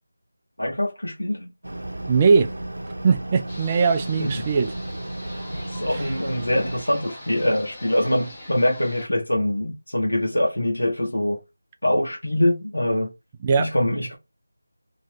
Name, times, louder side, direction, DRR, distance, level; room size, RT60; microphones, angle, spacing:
voice 1, 0.6-1.5 4.2-4.4 5.7-11.4 11.8-13.1 13.6-14.2, left 1 dB, 80° left, 1.0 m, -24 dB
sound 1, 1.6-6.8, right 1 dB, 75° right, 0.6 m, -33 dB
voice 2, 2.1-2.5 3.0-4.7 5.9-6.0 13.4-13.7, right 5 dB, 20° right, 0.3 m, -20 dB
sound 2, 3.5-9.1, left 1 dB, 10° left, 1.5 m, -41 dB
3.1 x 2.5 x 3.1 m
figure-of-eight pair, 165°, 0 cm